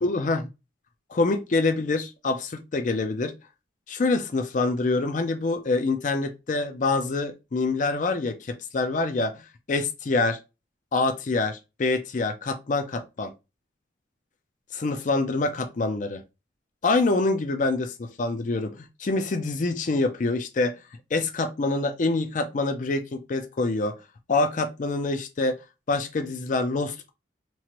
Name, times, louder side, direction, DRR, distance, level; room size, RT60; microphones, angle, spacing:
voice 1, 0.0-0.4 1.1-3.3 3.9-9.3 9.7-10.4 10.9-13.3 14.7-16.2 16.8-20.7 21.1-23.9 24.3-25.6 25.9-27.1, left 3 dB, 45° left, 0.4 m, -26 dB
3.0 x 2.4 x 2.9 m
head